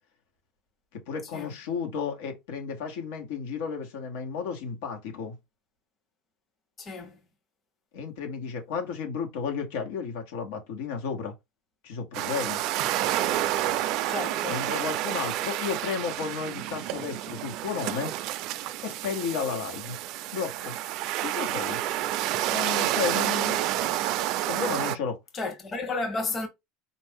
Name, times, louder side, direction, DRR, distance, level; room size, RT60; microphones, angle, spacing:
voice 1, 0.9-5.3 7.9-11.3 11.8-12.6 14.5-18.1 18.8-20.0 20.3-20.7 21.2-21.8 22.5-23.7 24.5-25.2, left 6 dB, 85° left, 1.4 m, -33 dB
voice 2, 6.8-7.2 14.1-14.6 25.3-26.5, left 3 dB, 25° left, 0.9 m, -32 dB
sound 1, 12.1-25.0, right 13 dB, 50° right, 0.4 m, -29 dB
4.2 x 2.6 x 3.4 m
cardioid pair, 155°, 0 cm